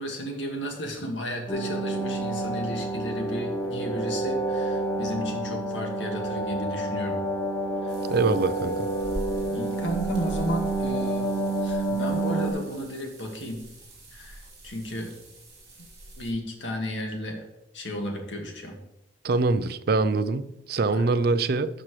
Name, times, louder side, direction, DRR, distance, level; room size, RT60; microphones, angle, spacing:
voice 1, 0.0-7.2 7.8-7.9 9.5-11.3 11.6-13.6 14.1-15.1 16.2-17.4 17.7-18.8 20.9-21.1, equal, 85° left, 1.9 m, -33 dB
sound 1, 1.5-12.5, right 2 dB, 15° left, 0.9 m, -29 dB
sound 2, 7.9-16.3, right 1 dB, 20° right, 3.4 m, -43 dB
voice 2, 8.1-8.9 19.2-21.7, right 3 dB, 55° right, 0.5 m, -24 dB
12.0 x 6.0 x 3.2 m
head